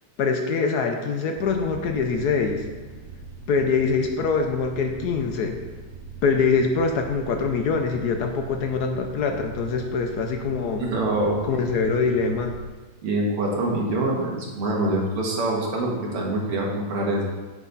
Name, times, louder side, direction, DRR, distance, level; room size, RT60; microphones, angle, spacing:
voice 1, 0.2-2.7 3.5-5.6 6.2-10.8 11.4-12.6, left 5 dB, 70° left, 4 dB, 0.9 m, -24 dB
sound 1, 1.3-12.7, right 3 dB, 65° right, 1.3 m, -42 dB
voice 2, 10.8-11.4 13.0-17.2, right 2 dB, 80° right, -2 dB, 2.4 m, -25 dB
9.6 x 6.2 x 4.0 m, 1.3 s
omnidirectional pair, 2.4 m